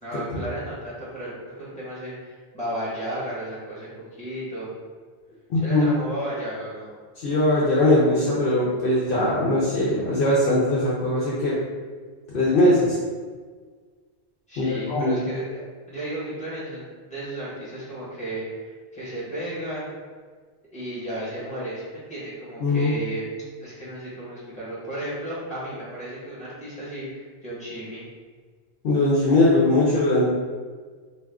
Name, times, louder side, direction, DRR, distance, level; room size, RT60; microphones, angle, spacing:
voice 1, 0.0-3.9 4.2-4.7 5.6-6.9 14.5-19.9 20.7-23.2 23.6-28.0, right 1 dB, 5° left, -9 dB, 1.2 m, -34 dB
voice 2, 5.5-6.0 7.2-11.5 12.3-13.0 14.6-15.2 22.6-22.9 28.8-30.2, left 1 dB, 60° left, -6 dB, 0.7 m, -20 dB
2.6 x 2.3 x 3.4 m, 1.5 s
omnidirectional pair, 1.1 m